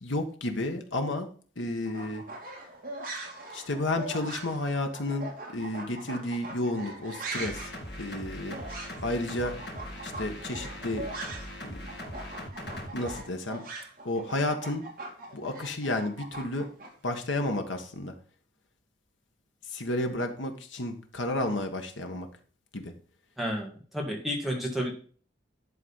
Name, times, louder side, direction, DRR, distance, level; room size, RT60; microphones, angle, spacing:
voice 1, 0.0-1.3 1.6-2.2 3.5-7.7 8.0-8.6 9.0-9.5 10.0-11.1 11.6-11.9 12.9-13.6 14.0-14.8 15.3-16.7 17.0-18.1 19.7-22.3 22.7-22.9, left 1 dB, 80° left, 5 dB, 1.4 m, -31 dB
sound 1, 1.8-11.6 11.9-16.9, right 2 dB, 45° right, 2.6 m, -41 dB
sound 2, 7.3-13.2, equal, 65° left, 2.7 m, -40 dB
voice 2, 23.4-24.9, equal, ahead, -1 dB, 1.8 m, -31 dB
11.0 x 4.0 x 5.6 m, 0.42 s
head